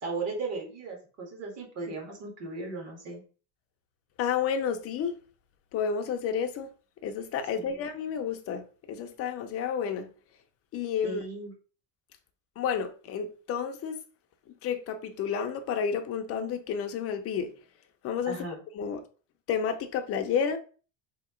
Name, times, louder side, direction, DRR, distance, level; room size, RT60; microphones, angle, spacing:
voice 1, 0.0-3.2 7.5-7.8 11.0-11.5 18.3-18.6, right 3 dB, 35° right, 1.7 m, -36 dB
voice 2, 4.2-5.1 5.7-6.7 7.0-10.1 10.7-11.2 12.6-14.0 14.6-17.5 18.0-18.4 18.7-19.0 19.5-20.6, left 7 dB, 35° left, 0.5 m, -30 dB
3.8 x 2.8 x 4.9 m
cardioid pair, 175°, 42 cm